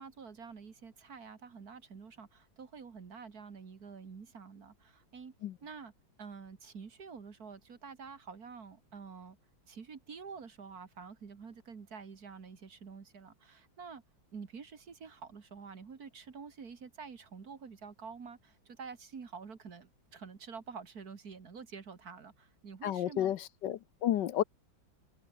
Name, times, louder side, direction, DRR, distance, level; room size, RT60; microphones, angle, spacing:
voice 1, 0.0-5.3 5.6-5.9 6.2-9.4 9.7-14.0 14.3-23.3, right 5 dB, 50° right, 2.4 m, -48 dB
voice 2, 22.8-24.4, left 11 dB, 70° left, 1.4 m, -31 dB
omnidirectional pair, 2.1 m